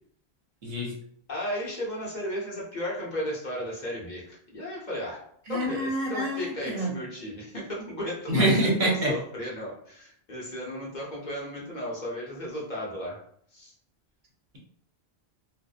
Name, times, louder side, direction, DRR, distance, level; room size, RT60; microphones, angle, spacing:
voice 1, 0.6-0.9 5.5-6.9 8.3-9.1, right 1 dB, 55° right, -2 dB, 0.7 m, -26 dB
voice 2, 1.3-5.2 5.5-8.5 8.8-13.2 13.5-13.7, equal, 50° left, -4 dB, 0.8 m, -35 dB
2.6 x 2.0 x 2.3 m, 0.65 s
omnidirectional pair, 1.1 m